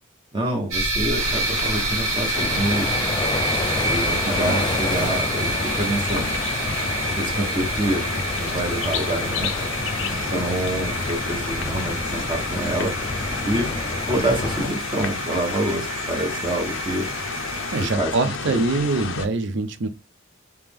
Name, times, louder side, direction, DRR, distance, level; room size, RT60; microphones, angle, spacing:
voice 1, 0.3-3.0 3.8-6.3 7.2-8.1 8.4-9.5 10.1-12.9 13.4-13.7 14.1-17.1 17.8-18.1 18.5-18.6, right 1 dB, 25° right, 0.8 m, -27 dB
sound 1, 0.7-17.9, right 2 dB, 85° right, 1.3 m, -29 dB
sound 2, 1.2-19.3, left 5 dB, 70° left, 0.6 m, -31 dB
sound 3, 2.3-14.7, left 2 dB, 20° left, 0.4 m, -29 dB
voice 2, 4.2-4.6 17.7-19.9, right 3 dB, 65° right, 0.5 m, -24 dB
3.3 x 2.9 x 3.5 m
head